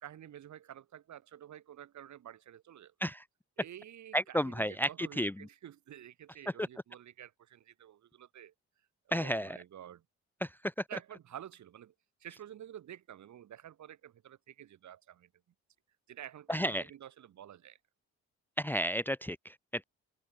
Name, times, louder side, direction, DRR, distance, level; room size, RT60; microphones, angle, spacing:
voice 1, 0.0-2.9 3.6-8.5 9.1-10.0 10.9-11.9 12.2-15.3 16.1-17.8, right 10 dB, 70° right, 6.7 m, -50 dB
voice 2, 4.1-5.5 6.6-6.7 9.1-9.6 10.4-10.8 16.5-16.9 18.6-19.8, equal, 5° left, 0.7 m, -32 dB
cardioid pair, 90°, 30 cm